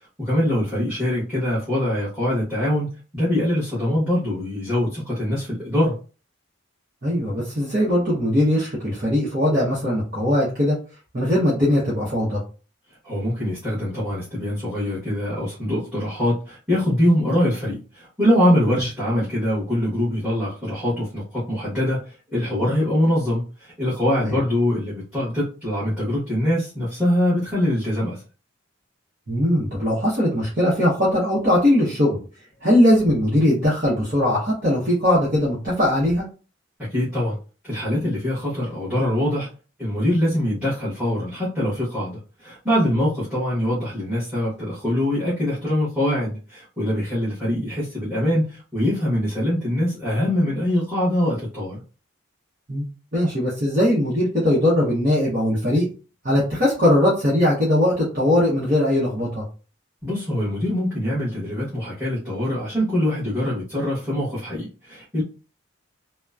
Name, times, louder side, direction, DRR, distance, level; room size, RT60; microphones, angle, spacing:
voice 1, 0.2-5.9 13.0-28.2 36.8-37.4 37.6-39.5 39.8-51.8 60.0-65.2, left 1 dB, 5° right, -10 dB, 1.2 m, -23 dB
voice 2, 7.0-10.8 11.1-12.4 18.7-18.8 24.2-24.4 29.3-32.2 32.6-36.3 42.9-43.0 52.7-52.8 53.1-55.9 56.2-59.4, left 1 dB, 40° right, -8 dB, 0.9 m, -20 dB
2.9 x 2.1 x 2.4 m, 0.35 s
head